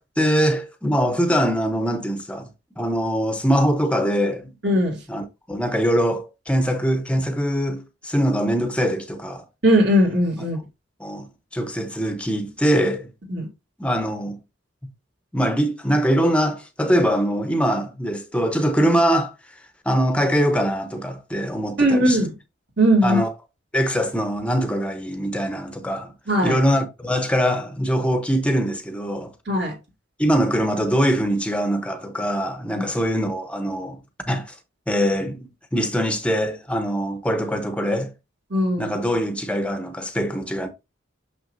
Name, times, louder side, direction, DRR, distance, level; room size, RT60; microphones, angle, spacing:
voice 1, 0.0-2.5 2.8-4.5 5.1-9.4 11.0-11.3 11.5-13.1 13.8-14.4 15.3-19.3 19.8-22.2 23.0-23.3 23.7-26.1 26.4-29.3 30.2-34.0 34.3-34.6 34.9-38.1 38.8-40.7, equal, 5° left, 0.9 m, -22 dB
voice 2, 4.6-5.0 9.6-10.6 13.3-13.5 21.8-22.3 22.8-23.2 26.3-26.6 29.5-29.7 32.7-32.8 38.5-38.9, equal, 55° right, 2.3 m, -19 dB
6.3 x 6.1 x 2.6 m
head